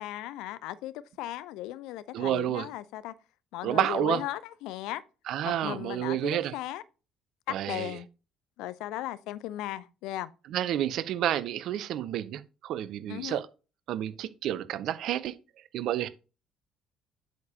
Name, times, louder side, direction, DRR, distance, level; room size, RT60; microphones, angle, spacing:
voice 1, 0.0-3.1 3.5-5.0 5.4-6.8 7.7-8.1 8.6-10.3 13.1-13.4, left 14 dB, 60° left, 0.5 m, -37 dB
voice 2, 2.1-2.7 3.6-4.2 5.3-6.5 7.5-7.9 10.5-13.5 13.9-15.4 15.7-16.1, right 12 dB, 55° right, 0.6 m, -30 dB
8.1 x 6.5 x 2.8 m
figure-of-eight pair, 50°, 0 cm